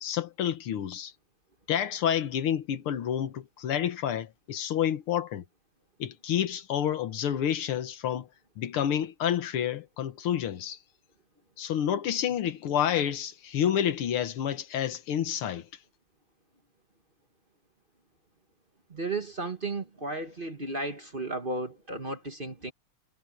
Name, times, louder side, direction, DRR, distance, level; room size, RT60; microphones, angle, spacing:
voice 1, 0.0-1.1 1.7-5.4 6.0-8.3 8.6-10.8 11.6-15.7, left 10 dB, 75° left, 2.0 m, -29 dB
voice 2, 18.9-22.7, right 2 dB, 25° right, 1.6 m, -34 dB
omnidirectional pair, 2.4 m